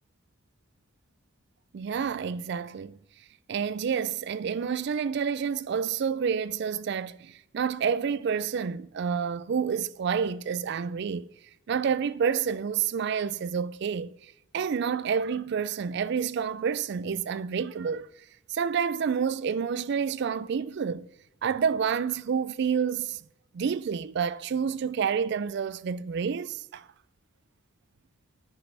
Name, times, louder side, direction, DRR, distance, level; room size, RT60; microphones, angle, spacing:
voice 1, 1.7-3.0 3.5-11.3 11.7-14.1 14.5-18.1 18.5-21.1 21.4-23.2 23.5-26.9, right 6 dB, 50° right, 0.3 m, -29 dB
11.0 x 6.8 x 3.3 m
head